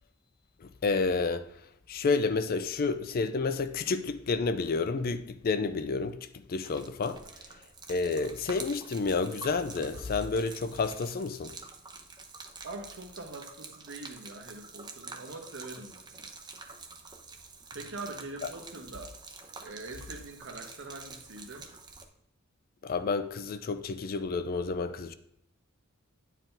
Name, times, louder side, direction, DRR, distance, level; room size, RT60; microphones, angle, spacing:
voice 1, 0.6-1.4 1.9-6.2 6.5-7.2 7.9-11.5 22.8-25.1, left 4 dB, 45° left, 0.4 m, -30 dB
Gurgling / Liquid, 6.6-22.1, right 4 dB, 20° right, 0.6 m, -47 dB
voice 2, 12.6-16.3 17.7-19.1 19.6-21.7, right 2 dB, 60° right, 0.9 m, -43 dB
9.1 x 4.6 x 3.8 m
head